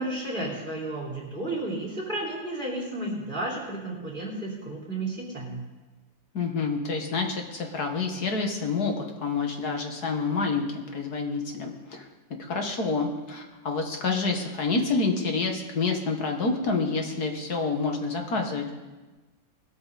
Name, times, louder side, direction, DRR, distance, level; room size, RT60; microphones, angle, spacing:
voice 1, 0.0-5.6, right 2 dB, 25° right, -5 dB, 4.9 m, -32 dB
voice 2, 6.3-12.0 12.5-18.7, left 4 dB, 50° left, 3 dB, 2.1 m, -28 dB
21.0 x 13.0 x 4.2 m, 1.2 s
omnidirectional pair, 2.1 m